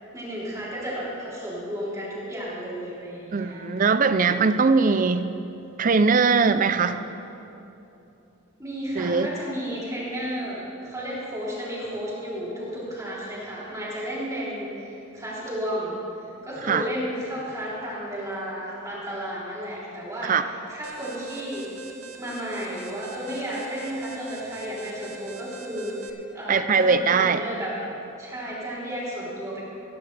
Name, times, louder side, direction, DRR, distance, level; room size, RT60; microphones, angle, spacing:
voice 1, 0.1-3.6 8.6-16.0 16.4-21.7 22.2-27.8 28.2-29.6, equal, 15° right, -8 dB, 3.5 m, -33 dB
voice 2, 3.3-5.3 5.8-7.0 9.0-9.3 16.7-16.8 20.2-20.4 26.5-27.4, right 4 dB, 40° right, 11 dB, 0.5 m, -20 dB
Alarm, 20.8-26.1, right 2 dB, 90° right, 1.0 m, -41 dB
16.5 x 15.0 x 3.4 m, 2.8 s
head